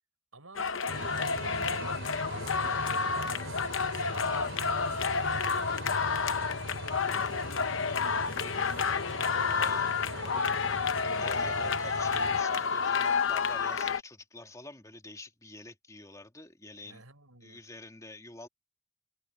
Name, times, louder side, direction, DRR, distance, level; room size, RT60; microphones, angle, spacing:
voice 1, 0.3-0.7 1.1-11.1 16.8-17.6, right 3 dB, 90° right, 5.2 m, -52 dB
sound 1, 0.5-14.0, left 5 dB, 60° left, 0.9 m, -30 dB
sound 2, 0.9-12.4, right 1 dB, 60° right, 4.1 m, -41 dB
voice 2, 9.5-9.9 11.2-17.0 17.4-18.5, left 2 dB, 15° left, 2.8 m, -47 dB
head